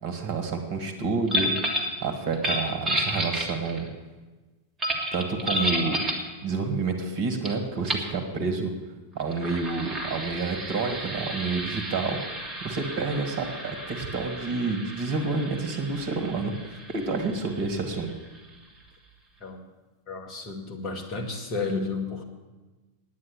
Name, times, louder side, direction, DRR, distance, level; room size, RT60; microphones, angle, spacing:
voice 1, 0.0-1.5 2.0-3.9 5.1-6.0 6.4-8.7 9.1-12.2 12.6-16.5 16.9-18.1, right 4 dB, 50° right, 6 dB, 1.7 m, -29 dB
sound 1, 1.3-2.0 2.3-3.9 4.8-6.3 7.4-7.5 7.8-8.1 9.2-18.5, equal, 20° right, 2.1 m, -32 dB
voice 2, 20.1-22.2, left 4 dB, 35° left, 2 dB, 2.1 m, -32 dB
9.7 x 9.5 x 8.3 m, 1.2 s
figure-of-eight pair, 90°, 0 cm